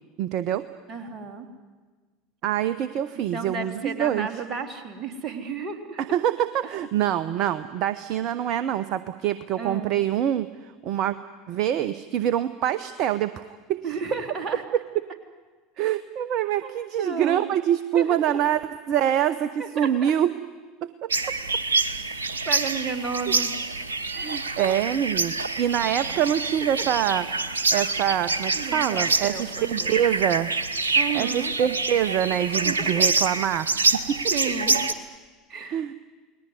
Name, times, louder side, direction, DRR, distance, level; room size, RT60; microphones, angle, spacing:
voice 1, 0.2-0.6 2.4-4.3 6.0-11.2 11.5-13.8 15.8-18.6 18.9-20.3 20.8-21.3 23.3-23.4 24.2-30.5 31.1-33.7 34.1-34.2 35.6-35.9, right 10 dB, 50° right, 14 dB, 0.9 m, -25 dB
voice 2, 0.9-1.5 3.1-6.0 9.6-9.9 13.8-14.6 16.6-17.4 17.9-18.2 19.6-20.1 22.5-23.5 24.1-24.8 25.0-25.2 26.7-26.8 28.5-30.0 30.9-31.5 32.6-33.0 34.3-34.8 35.5-35.8, right 5 dB, 30° right, 5 dB, 3.4 m, -33 dB
sound 1, 21.1-34.9, right 3 dB, 75° right, 1.1 m, -26 dB
29.5 x 20.0 x 9.7 m, 1.4 s
figure-of-eight pair, 75°, 0 cm